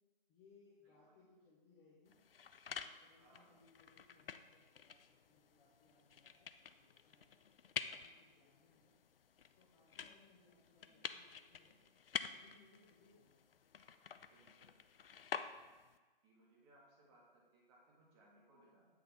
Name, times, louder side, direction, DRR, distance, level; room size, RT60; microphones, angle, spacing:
voice 1, 0.3-2.2 2.6-7.4 7.8-8.9 9.5-11.8 12.3-13.6, left 4 dB, 10° left, -7 dB, 0.5 m, -69 dB
voice 2, 0.8-1.2 3.2-3.6 10.8-11.0 14.3-14.7 16.2-18.9, right 1 dB, 25° right, -4 dB, 1.9 m, -68 dB
sound 1, 2.1-16.0, left 7 dB, 75° left, 0.5 m, -49 dB
8.4 x 5.5 x 3.4 m, 1.3 s
figure-of-eight pair, 135°, 29 cm